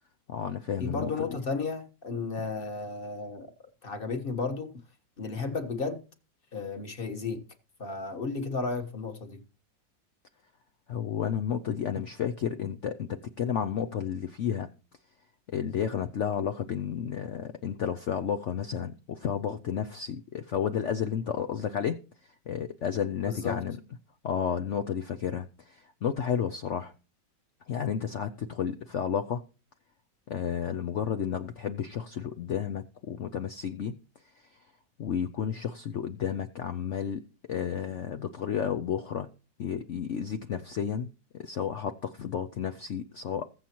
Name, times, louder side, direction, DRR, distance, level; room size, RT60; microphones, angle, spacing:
voice 1, 0.3-1.1 10.9-14.7 15.5-22.0 22.5-23.8 24.2-26.9 27.7-29.4 30.3-33.9 35.0-37.2 37.5-39.3 39.6-43.5, left 8 dB, 75° left, 0.6 m, -32 dB
voice 2, 0.8-3.5 3.8-4.7 5.2-6.0 6.5-7.4 7.8-9.4 23.3-23.6, left 4 dB, 30° left, 1.3 m, -33 dB
21.5 x 7.3 x 3.0 m
omnidirectional pair, 2.0 m